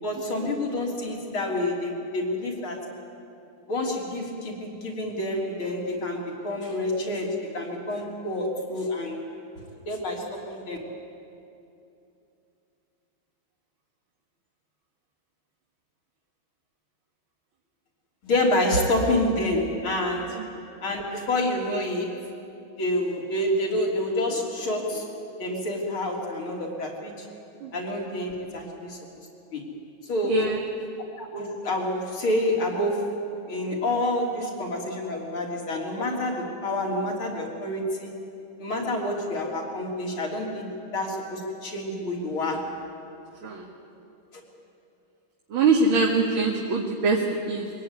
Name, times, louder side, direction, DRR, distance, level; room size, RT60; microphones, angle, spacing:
voice 1, 0.0-2.8 3.7-9.2 9.9-10.8 18.2-20.4 20.8-22.1 22.8-25.1 25.4-27.3 27.7-29.0 29.5-29.7 30.0-30.3 31.2-33.1 33.5-38.1 38.6-40.7 40.9-42.7, left 1 dB, 85° left, -1 dB, 4.2 m, -28 dB
voice 2, 30.3-30.6 43.4-43.7 45.5-47.7, right 3 dB, 80° right, 0 dB, 2.5 m, -23 dB
23.5 x 17.5 x 9.7 m, 2.7 s
omnidirectional pair, 2.2 m